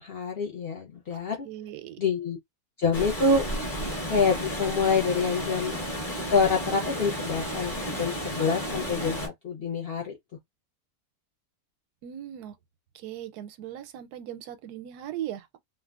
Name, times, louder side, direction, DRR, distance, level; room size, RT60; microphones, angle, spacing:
voice 1, 0.0-1.5 2.0-2.4 2.8-3.5 4.1-5.8 6.3-10.2, left 4 dB, 60° left, 0.6 m, -26 dB
voice 2, 1.4-2.0 12.0-12.6 12.9-15.6, right 11 dB, 85° right, 1.1 m, -38 dB
Water, 2.9-9.3, equal, 30° left, 1.2 m, -32 dB
3.1 x 2.1 x 2.3 m
omnidirectional pair, 1.6 m